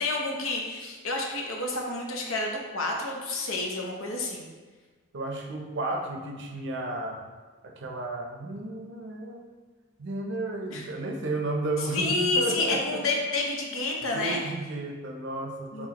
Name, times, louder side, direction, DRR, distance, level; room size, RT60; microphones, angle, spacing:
voice 1, 0.0-4.5 10.7-10.8 11.9-14.4 15.7-15.9, left 2 dB, 70° left, 0 dB, 0.8 m, -29 dB
voice 2, 5.1-7.2 7.6-9.4 10.0-12.8 14.1-15.9, right 2 dB, 60° right, 2 dB, 0.6 m, -33 dB
4.8 x 3.8 x 2.9 m, 1.4 s
head